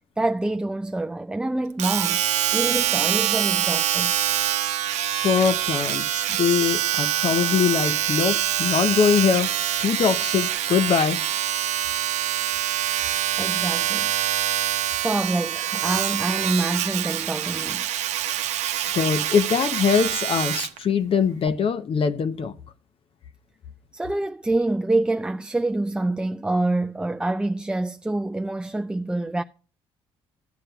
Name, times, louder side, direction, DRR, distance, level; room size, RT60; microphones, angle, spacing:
voice 1, 0.2-2.2 2.5-4.1 13.4-14.5 14.8-17.9 23.9-29.4, right 2 dB, 10° right, 0.3 m, -26 dB
Domestic sounds home sounds, 1.8-20.8 21.5-21.6, right 12 dB, 75° right, 0.7 m, -25 dB
voice 2, 5.2-9.5 9.8-11.2 18.9-22.5, left 7 dB, 50° left, 0.7 m, -22 dB
14.0 x 7.5 x 2.3 m
supercardioid pair, 70°, 12 cm